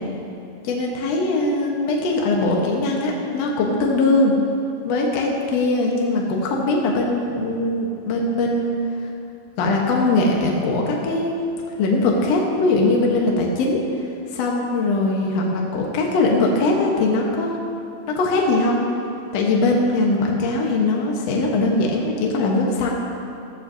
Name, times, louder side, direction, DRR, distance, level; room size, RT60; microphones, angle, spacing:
voice 1, 0.6-4.3 4.8-8.8 9.6-11.4 11.8-13.8 14.3-17.6 18.1-18.8 19.3-22.9, left 2 dB, 80° left, -1 dB, 1.4 m, -21 dB
14.5 x 14.0 x 2.7 m, 2.7 s
omnidirectional pair, 4.7 m